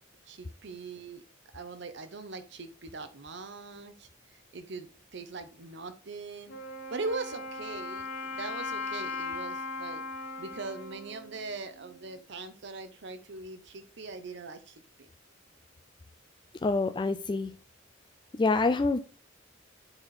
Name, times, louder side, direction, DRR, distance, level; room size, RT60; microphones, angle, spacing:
voice 1, 0.3-1.2 1.5-6.6 6.9-15.1, right 3 dB, 60° right, 8 dB, 0.8 m, -41 dB
Wind instrument woodwind instrument, 6.5-12.2, left 3 dB, 80° left, 1.6 m, -39 dB
voice 2, 16.6-17.5 18.3-19.0, left 3 dB, 25° left, 7 dB, 0.3 m, -26 dB
7.9 x 4.3 x 4.2 m, 0.35 s
head